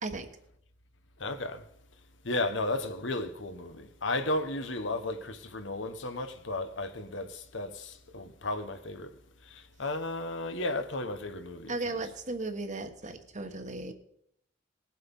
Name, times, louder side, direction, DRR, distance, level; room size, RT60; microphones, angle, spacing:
voice 1, 1.2-1.6 2.2-9.1 9.4-12.0, left 2 dB, 75° left, 1.2 m, -34 dB
voice 2, 11.7-13.9, right 2 dB, 40° right, 1.4 m, -36 dB
19.5 x 7.8 x 5.5 m
head